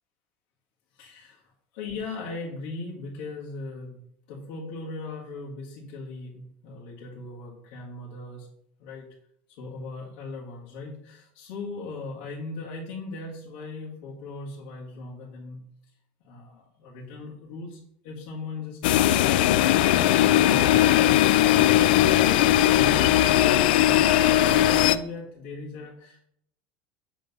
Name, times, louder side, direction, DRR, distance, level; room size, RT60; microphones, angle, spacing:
voice 1, 1.0-1.4 1.7-8.5 8.8-9.1 9.6-15.6 16.2-19.6 22.0-26.3, left 3 dB, 60° left, -4 dB, 1.6 m, -39 dB
sound 1, 18.8-25.0, left 13 dB, 85° left, 0.4 m, -19 dB
7.6 x 3.4 x 5.4 m, 0.72 s
cardioid pair, 175°, 5 cm